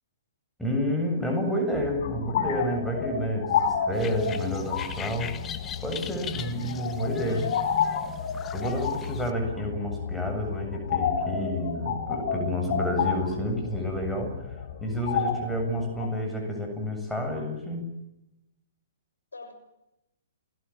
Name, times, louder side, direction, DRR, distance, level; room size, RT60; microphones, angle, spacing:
voice 1, 0.6-5.3 5.8-7.5 8.5-17.8, left 1 dB, ahead, 2 dB, 7.5 m, -29 dB
sound 1, 1.7-16.1, left 7 dB, 45° left, 4.9 m, -31 dB
sound 2, 3.9-9.3, left 9 dB, 20° left, 1.6 m, -40 dB
voice 2, 6.2-6.8 7.1-7.9 19.3-19.5, left 3 dB, 75° left, 7 dB, 6.7 m, -45 dB
30.0 x 20.5 x 7.3 m, 0.90 s
figure-of-eight pair, 120°, 0 cm